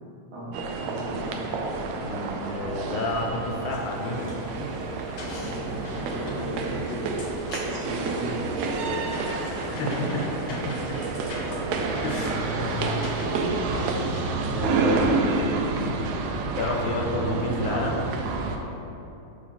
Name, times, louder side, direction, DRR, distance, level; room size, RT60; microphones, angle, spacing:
sound 1, 0.5-18.6, right 3 dB, 80° right, 1.7 m, -29 dB
voice 1, 0.8-1.4 5.3-7.2 7.6-9.6 10.1-10.3 12.9-13.5, right 1 dB, 65° right, -6 dB, 2.4 m, -36 dB
voice 2, 2.0-4.3 4.6-4.7 9.7-11.0 12.0-13.0 13.8-14.0 14.5-15.3 16.6-18.1, left 2 dB, 85° left, 0 dB, 2.2 m, -30 dB
sound 2, 3.7-14.2, left 1 dB, 65° left, 1.4 m, -40 dB
6.5 x 3.1 x 5.8 m, 2.9 s
omnidirectional pair, 3.4 m